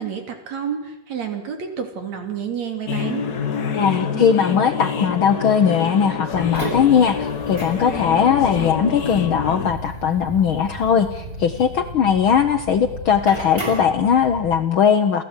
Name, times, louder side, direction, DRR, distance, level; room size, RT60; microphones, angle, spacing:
voice 1, 0.0-3.2, right 7 dB, 65° right, 5 dB, 4.3 m, -29 dB
sound 1, 2.9-9.7, left 6 dB, 45° left, 1.5 m, -27 dB
voice 2, 3.7-15.2, left 7 dB, 60° left, 8 dB, 1.4 m, -19 dB
sound 2, 6.3-14.6, right 1 dB, 15° right, 6.4 m, -33 dB
29.0 x 15.5 x 8.3 m, 0.90 s
omnidirectional pair, 3.4 m